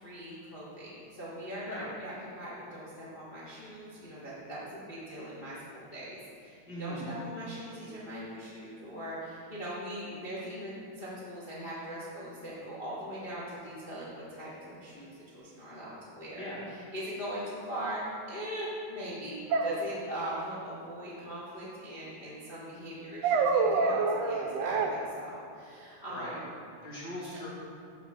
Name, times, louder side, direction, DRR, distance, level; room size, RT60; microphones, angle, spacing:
voice 1, 0.0-16.4 16.7-26.4 27.3-27.4, equal, 80° left, -8 dB, 0.5 m, -41 dB
voice 2, 6.7-7.1 16.4-16.6 26.1-26.4 26.8-27.5, equal, 35° left, -7 dB, 2.3 m, -39 dB
sound 1, 17.8-17.9 19.5-20.4 23.2-24.9, right 4 dB, 80° right, 1.5 m, -27 dB
13.5 x 4.5 x 3.6 m, 2.4 s
omnidirectional pair, 3.5 m